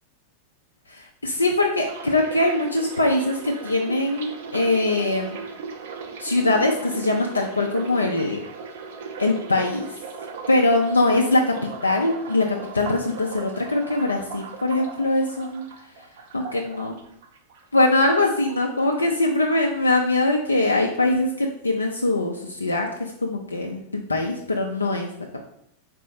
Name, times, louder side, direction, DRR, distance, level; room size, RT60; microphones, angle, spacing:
voice 1, 0.9-5.4 6.2-8.4 9.2-9.9 10.5-15.7 16.3-17.0 17.7-25.1, left 2 dB, 80° left, 1 dB, 0.3 m, -22 dB
sound 1, 1.8-17.8 18.1-19.0 19.3-19.6, right 5 dB, 55° right, 0.5 m, -38 dB
3.8 x 2.0 x 4.1 m, 0.73 s
figure-of-eight pair, 90°, 0 cm